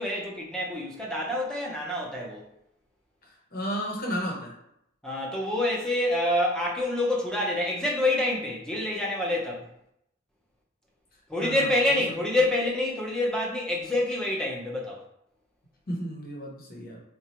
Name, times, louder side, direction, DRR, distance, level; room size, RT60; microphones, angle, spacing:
voice 1, 0.0-2.4 5.0-9.7 11.3-15.0, left 1 dB, 5° left, -3 dB, 0.7 m, -27 dB
voice 2, 3.2-4.5 11.4-12.0 15.9-17.0, equal, 45° left, -2 dB, 0.9 m, -33 dB
4.1 x 2.3 x 2.9 m, 0.78 s
head